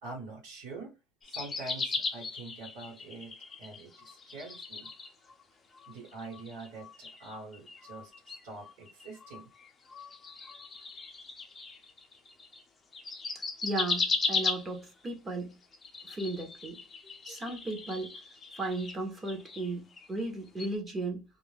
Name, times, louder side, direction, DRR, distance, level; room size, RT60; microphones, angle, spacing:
voice 1, 0.0-0.9 1.2-3.3 3.6-4.9 5.9-9.5, right 3 dB, 85° right, 1.3 m, -45 dB
sound 1, 1.2-5.4 5.7-12.6 12.9-15.0 15.6-20.3 20.6-20.7, left 4 dB, 20° left, 0.5 m, -38 dB
voice 2, 13.6-15.5 16.0-16.8 17.2-18.2 18.5-21.2, right 2 dB, 20° right, 0.8 m, -35 dB
2.4 x 2.1 x 3.1 m
cardioid pair, 145°, 0 cm